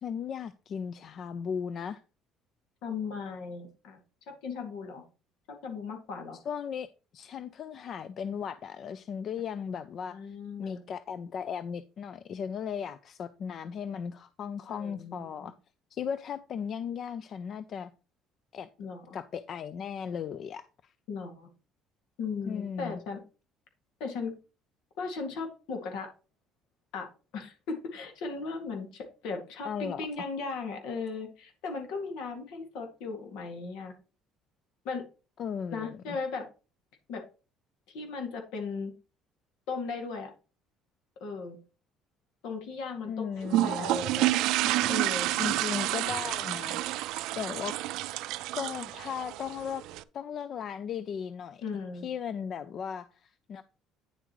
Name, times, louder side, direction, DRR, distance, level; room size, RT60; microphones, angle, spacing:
voice 1, 0.0-2.0 6.5-6.9 7.1-10.2 10.6-15.5 15.9-17.9 18.5-18.7 19.1-20.6 22.5-23.0 29.6-30.3 35.4-36.2 43.1-43.9 45.4-46.8 47.3-47.7 48.5-49.8 50.1-51.6 52.0-53.6, left 7 dB, 40° left, 0.4 m, -36 dB
voice 2, 2.8-4.0 4.3-5.0 5.6-6.4 10.1-10.8 14.7-15.5 18.8-19.2 21.1-21.5 22.2-23.2 24.0-24.3 25.0-26.1 26.9-27.1 27.3-33.9 34.8-35.0 35.7-36.5 37.1-37.2 37.9-38.9 39.7-40.3 41.2-41.6 42.4-44.3 44.9-45.3 46.7-46.8 51.6-52.1, left 4 dB, 75° left, 2.2 m, -37 dB
sound 1, 43.5-50.0, right 16 dB, 70° right, 0.4 m, -29 dB
9.4 x 7.3 x 3.1 m
cardioid pair, 155°, 0 cm